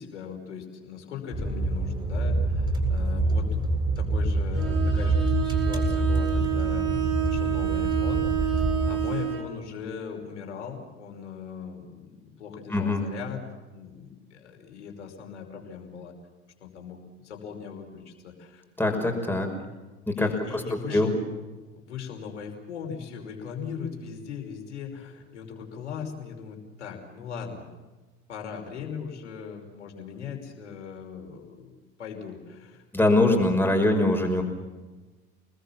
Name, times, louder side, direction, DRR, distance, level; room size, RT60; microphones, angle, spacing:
voice 1, 0.0-13.4 13.7-16.1 16.6-19.0 20.1-21.2 21.7-27.7 28.3-31.7 32.0-32.8 33.6-33.8, left 6 dB, 80° left, 2 dB, 5.4 m, -39 dB
sound 1, 1.3-9.1, right 2 dB, 15° right, 7.5 m, -26 dB
Bowed string instrument, 4.5-9.5, right 13 dB, 40° right, 5.2 m, -29 dB
voice 2, 12.7-13.0 18.8-19.5 20.1-21.1 32.9-34.4, left 2 dB, 5° left, 2 dB, 5.8 m, -23 dB
29.5 x 20.5 x 7.3 m, 1.2 s
hypercardioid pair, 75°, 35 cm